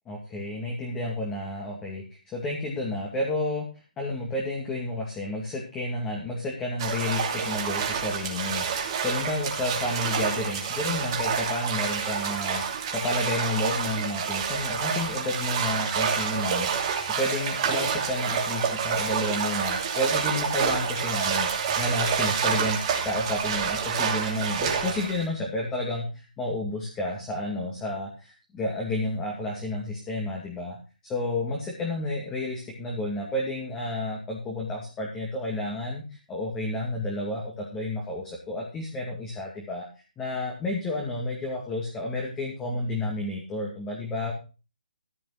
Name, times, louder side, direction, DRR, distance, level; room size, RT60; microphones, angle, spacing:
voice 1, 0.1-3.7 4.0-30.8 31.0-39.9 40.2-44.3, left 1 dB, 10° left, -1 dB, 2.3 m, -31 dB
sound 1, 6.8-25.3, right 7 dB, 35° right, 2.7 m, -28 dB
14.5 x 5.9 x 5.8 m, 0.33 s
hypercardioid pair, 155°, 5 cm